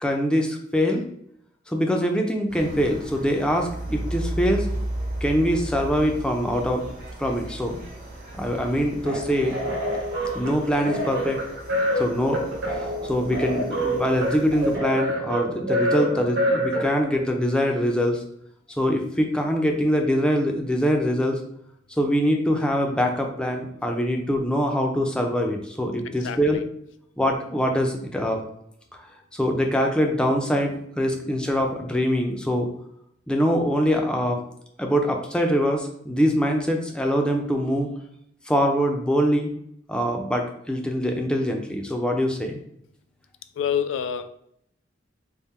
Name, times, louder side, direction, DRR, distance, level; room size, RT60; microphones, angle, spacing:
voice 1, 0.0-1.0 1.7-4.7 5.2-6.9 7.2-7.8 8.3-9.5 10.3-11.4 12.0-18.2 18.8-21.4 22.0-26.6 27.2-28.4 28.9-29.0 29.3-32.7 33.3-34.4 34.8-37.9 38.5-39.5 39.9-42.6, equal, 5° left, 2 dB, 0.4 m, -23 dB
sound 1, 2.5-14.8, right 1 dB, 45° right, 1.1 m, -35 dB
sound 2, 9.0-17.3, equal, 65° right, 1.2 m, -27 dB
voice 2, 26.1-26.6 43.6-44.3, left 8 dB, 85° left, 10 dB, 0.3 m, -28 dB
3.6 x 2.1 x 4.1 m, 0.73 s
head